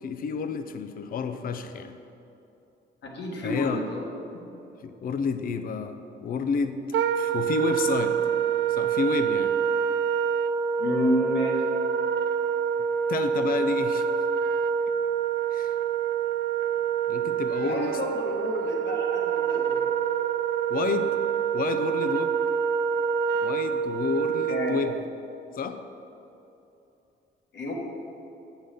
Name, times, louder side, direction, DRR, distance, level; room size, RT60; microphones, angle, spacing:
voice 1, 0.0-2.0 3.4-3.9 4.8-6.8 7.2-8.2 8.7-9.5 13.1-14.1 15.5-15.8 17.1-18.2 20.7-21.2 21.5-22.4 23.4-25.0 25.5-25.8, left 6 dB, 45° left, 9 dB, 0.4 m, -30 dB
voice 2, 3.0-4.0 4.3-4.4 10.8-11.6 17.6-19.8 24.5-24.8 27.5-27.7, left 1 dB, 65° left, -1 dB, 1.4 m, -30 dB
Wind instrument woodwind instrument, 6.9-25.0, right 8 dB, 65° right, 0.4 m, -26 dB
6.8 x 4.0 x 6.5 m, 2.9 s
cardioid pair, 90°, 20 cm